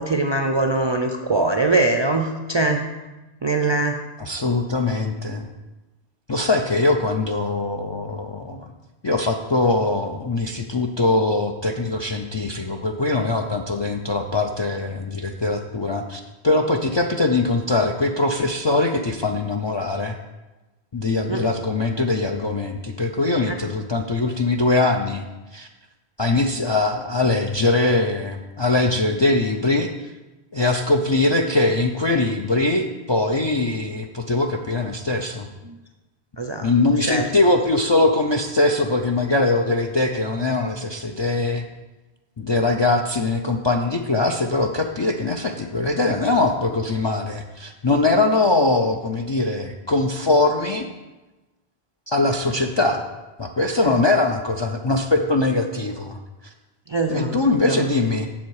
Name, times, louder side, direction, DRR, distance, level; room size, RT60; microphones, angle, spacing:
voice 1, 0.0-2.9 3.4-4.0 21.3-21.4 23.5-23.6 35.6-35.8 36.4-36.7 37.0-37.3 53.8-53.9 56.9-57.4 57.7-57.8, right 2 dB, 45° right, 4 dB, 0.4 m, -22 dB
voice 2, 4.2-5.5 6.3-8.7 9.0-20.1 20.9-25.2 25.5-25.7 26.2-29.9 30.5-35.5 36.6-41.6 42.4-50.9 52.1-53.0 53.4-56.2 57.1-58.3, left 2 dB, 45° left, 4 dB, 0.3 m, -22 dB
7.3 x 7.2 x 4.7 m, 1.1 s
omnidirectional pair, 1.0 m